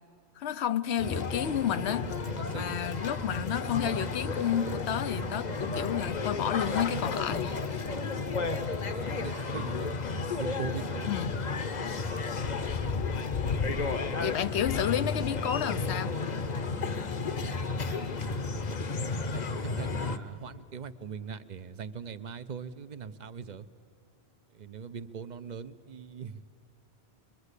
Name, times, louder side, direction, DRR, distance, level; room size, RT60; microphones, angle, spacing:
voice 1, 0.4-2.1 2.5-7.6 11.1-11.4 14.2-16.1, left 9 dB, 80° left, 1.0 m, -31 dB
sound 1, 1.0-20.2, left 4 dB, 45° left, 0.9 m, -32 dB
voice 2, 2.3-2.9 8.1-8.3 8.8-9.9 10.4-11.1 17.9-18.5 19.3-23.7 24.6-26.4, right 6 dB, 50° right, 0.7 m, -41 dB
24.0 x 22.0 x 8.2 m
omnidirectional pair, 1.1 m